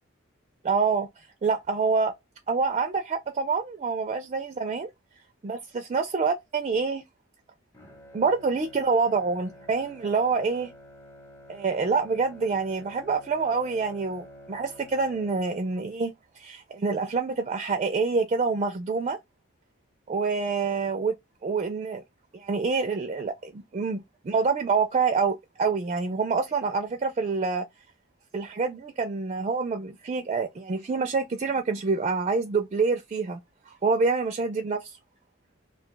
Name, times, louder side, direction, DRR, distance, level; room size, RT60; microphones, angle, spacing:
voice 1, 0.6-1.1 1.4-2.1 2.5-4.9 5.4-7.0 8.1-10.7 11.5-19.2 20.1-21.1 21.4-22.0 22.3-27.6 28.3-33.4 33.7-34.9, right 4 dB, 30° right, 0.4 m, -26 dB
Bowed string instrument, 7.7-16.1, equal, 15° left, 0.8 m, -50 dB
2.4 x 2.3 x 3.8 m
head